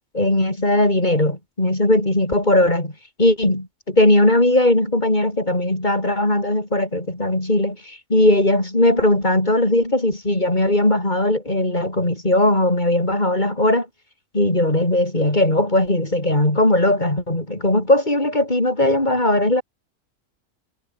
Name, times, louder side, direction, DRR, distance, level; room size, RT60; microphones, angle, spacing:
voice 1, 0.1-2.9 3.2-13.9 14.3-19.6, left 1 dB, 35° left, 5.9 m, -19 dB
omnidirectional pair, 1.4 m